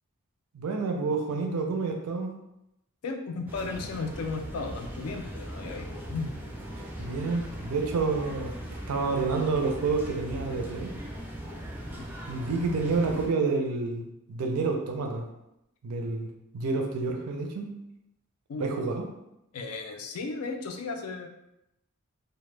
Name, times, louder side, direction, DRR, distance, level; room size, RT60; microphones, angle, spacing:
voice 1, 0.5-2.3 6.8-8.6 8.9-10.9 12.3-15.3 15.8-17.7 18.6-19.1, right 4 dB, 75° right, 3 dB, 0.4 m, -29 dB
voice 2, 3.0-6.3 11.9-12.1 18.5-18.7 19.5-21.3, left 4 dB, 70° left, 4 dB, 0.4 m, -35 dB
sound 1, 3.5-13.3, equal, 10° right, 0.4 m, -39 dB
2.1 x 2.0 x 3.1 m, 0.85 s
head